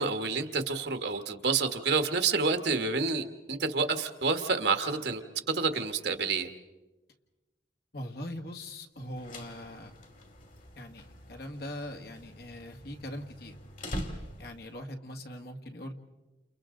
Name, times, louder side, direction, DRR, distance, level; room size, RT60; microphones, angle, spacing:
voice 1, 0.0-5.2 5.5-6.5, right 4 dB, 65° right, 7 dB, 1.5 m, -29 dB
voice 2, 7.9-9.9 10.8-13.6 14.4-15.9, left 1 dB, 60° left, 4 dB, 1.9 m, -41 dB
sound 1, 9.0-14.8, equal, 45° left, 2.4 m, -44 dB
30.0 x 29.0 x 3.9 m, 1.1 s
head